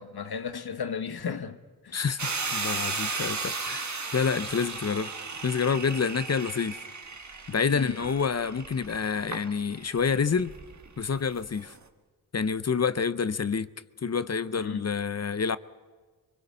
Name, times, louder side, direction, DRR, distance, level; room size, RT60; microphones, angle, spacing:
voice 1, 0.0-1.6 1.8-2.0 7.7-8.0 14.6-14.9, left 6 dB, 75° left, 1.4 m, -34 dB
voice 2, 1.9-5.1 5.4-6.8 7.5-10.5 11.0-11.7 12.3-13.7 14.0-15.6, left 6 dB, 40° left, 0.7 m, -28 dB
sound 1, 2.2-11.8, right 4 dB, 45° right, 1.6 m, -35 dB
26.0 x 24.0 x 5.6 m
wide cardioid pair, 90°, 38 cm